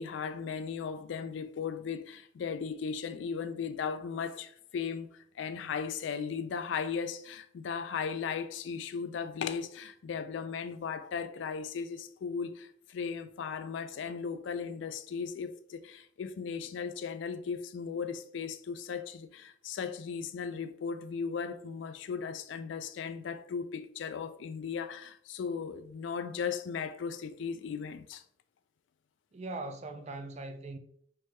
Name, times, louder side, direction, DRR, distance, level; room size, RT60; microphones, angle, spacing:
voice 1, 0.0-5.1 5.4-28.2, left 6 dB, 80° left, 0.3 m, -37 dB
voice 2, 29.3-30.8, right 2 dB, 35° right, 0.3 m, -40 dB
4.5 x 3.0 x 2.2 m
head